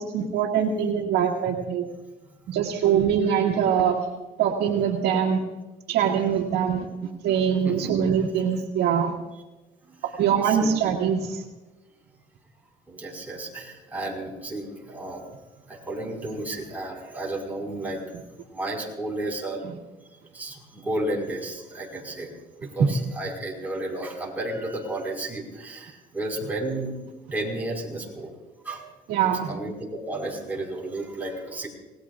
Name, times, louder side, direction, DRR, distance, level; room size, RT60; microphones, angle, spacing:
voice 1, 0.0-1.8 2.5-4.0 4.4-5.4 5.9-9.1 10.0-11.4 29.1-29.5, right 8 dB, 75° right, 0 dB, 2.0 m, -23 dB
voice 2, 12.9-15.2 15.7-18.0 18.5-19.6 20.3-22.3 22.7-26.9 27.3-28.3 28.6-28.8 29.2-31.7, right 1 dB, 10° right, -2 dB, 5.0 m, -32 dB
27.0 x 18.5 x 2.5 m, 1.1 s
cardioid pair, 110°, 17 cm